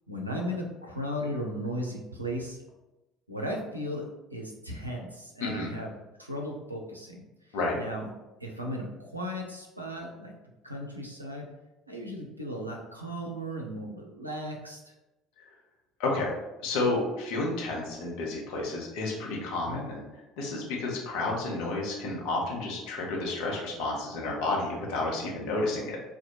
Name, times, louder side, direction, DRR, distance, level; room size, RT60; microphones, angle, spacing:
voice 1, 0.1-2.6 3.3-5.9 6.2-7.2 7.7-8.1 8.4-10.3 10.6-11.5 11.9-14.8 19.7-19.8, equal, 90° right, 0 dB, 0.4 m, -36 dB
voice 2, 5.4-5.7 7.5-7.8 15.4-15.5 16.0-16.3 16.6-20.0 20.4-26.0, left 2 dB, 60° left, -2 dB, 0.7 m, -31 dB
2.6 x 2.2 x 2.8 m, 0.99 s
figure-of-eight pair, 60°, 0 cm